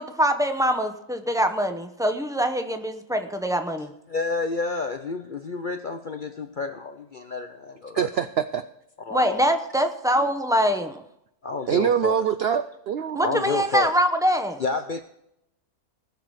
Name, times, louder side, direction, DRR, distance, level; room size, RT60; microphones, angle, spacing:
voice 1, 0.0-3.9 9.1-11.0 13.2-14.6, equal, 5° right, 6 dB, 0.5 m, -24 dB
voice 2, 4.1-8.1 9.1-9.4 11.4-12.2 13.2-13.9 14.6-15.0, left 4 dB, 55° left, 7 dB, 0.5 m, -30 dB
voice 3, 7.9-8.6 11.7-13.6, right 8 dB, 70° right, 11 dB, 0.6 m, -25 dB
19.0 x 6.7 x 4.8 m, 0.79 s
omnidirectional pair, 1.6 m